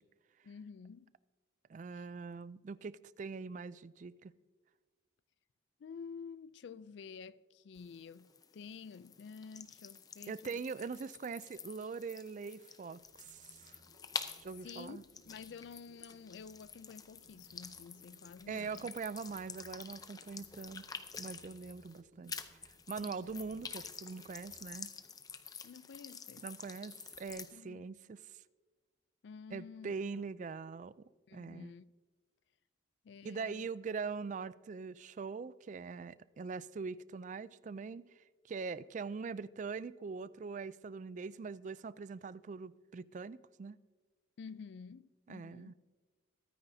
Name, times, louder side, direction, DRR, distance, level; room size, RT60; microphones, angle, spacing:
voice 1, 0.4-1.1 1.9-2.1 5.8-10.6 14.6-18.9 23.0-23.3 25.6-26.5 27.5-27.9 29.2-30.2 31.3-31.9 33.0-33.7 44.4-45.7, left 5 dB, 70° left, 0.4 m, -50 dB
voice 2, 1.7-4.3 10.3-13.8 14.4-15.0 18.5-20.8 21.2-22.3 22.9-24.9 26.4-28.2 29.5-31.7 33.2-38.0 38.4-43.8 45.3-45.7, right 5 dB, 40° right, 0.3 m, -42 dB
sound 1, 7.7-22.0 22.3-27.5, left 6 dB, 20° left, 0.5 m, -49 dB
sound 2, 12.6-24.6, right 1 dB, 85° right, 1.8 m, -66 dB
22.5 x 9.6 x 2.7 m
head